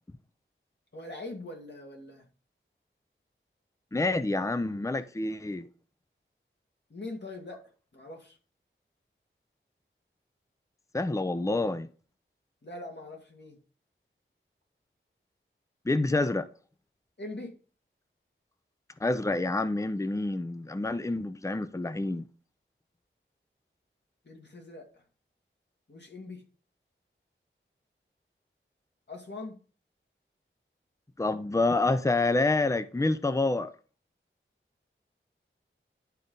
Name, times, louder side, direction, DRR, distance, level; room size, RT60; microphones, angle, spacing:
voice 1, 0.9-2.3 6.9-7.6 7.9-8.4 12.6-13.6 17.2-17.5 24.2-25.0 25.9-26.4 29.1-29.6, left 2 dB, 55° left, 2.1 m, -42 dB
voice 2, 3.9-5.7 10.9-11.9 15.9-16.5 19.0-22.2 31.2-33.7, left 2 dB, 15° left, 0.6 m, -27 dB
11.5 x 3.9 x 3.8 m
wide cardioid pair, 65°, 21 cm